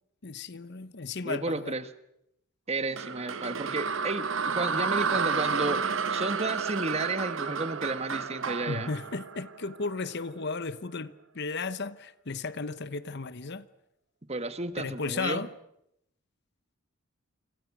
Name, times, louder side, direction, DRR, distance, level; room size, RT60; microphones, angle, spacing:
voice 1, 0.2-1.7 8.7-13.6 14.8-15.5, left 4 dB, 50° left, 1.0 m, -34 dB
voice 2, 1.2-1.9 2.7-8.9 14.3-15.4, right 2 dB, 30° right, 1.4 m, -32 dB
sound 1, 3.0-10.1, right 5 dB, 60° right, 1.0 m, -31 dB
29.0 x 26.0 x 6.1 m
head